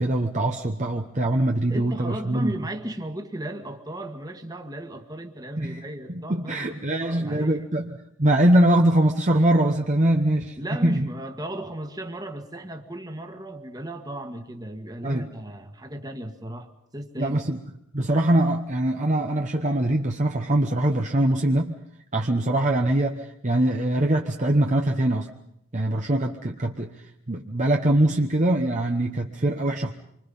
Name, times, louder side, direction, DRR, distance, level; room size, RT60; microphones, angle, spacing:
voice 1, 0.0-2.6 5.6-5.8 6.1-7.9 8.2-10.6 10.8-11.1 15.0-15.2 17.2-17.6 17.9-21.7 22.1-25.3 25.7-26.9 27.3-29.9, right 1 dB, 35° right, 1.1 m, -22 dB
voice 2, 1.7-7.6 10.6-17.4, right 1 dB, 20° right, 1.7 m, -35 dB
27.0 x 24.5 x 5.5 m
head